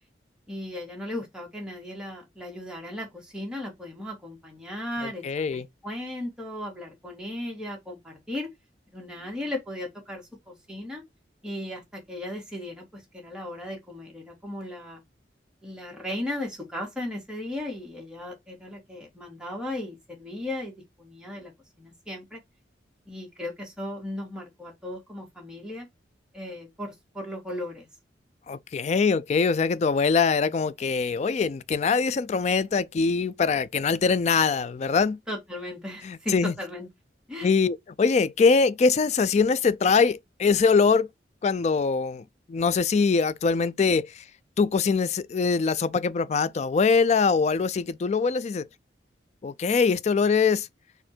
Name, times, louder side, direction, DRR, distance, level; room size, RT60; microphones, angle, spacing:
voice 1, 0.5-8.5 8.9-11.0 11.4-15.0 15.6-21.5 21.8-22.4 23.1-25.9 26.3-27.9 35.3-36.9 37.3-37.5, left 1 dB, 5° right, 1.7 m, -36 dB
voice 2, 5.2-5.6 28.5-35.2 36.1-36.5 37.4-41.1 41.4-42.2 42.5-44.1 44.6-48.6 49.4-50.7, left 5 dB, 40° left, 0.3 m, -23 dB
4.3 x 2.6 x 4.3 m
head